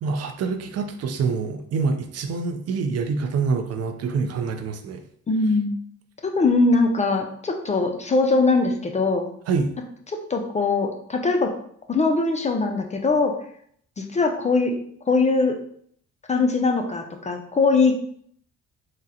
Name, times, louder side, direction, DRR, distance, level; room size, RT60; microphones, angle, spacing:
voice 1, 0.0-5.0 9.5-9.7, right 4 dB, 55° right, 6 dB, 0.5 m, -26 dB
voice 2, 5.3-5.7 6.2-9.3 10.3-11.5 11.9-13.3 14.0-14.8 15.1-15.6 16.3-17.9, left 3 dB, 25° left, 3 dB, 0.4 m, -21 dB
3.7 x 2.1 x 2.7 m, 0.64 s
cardioid pair, 90°, 30 cm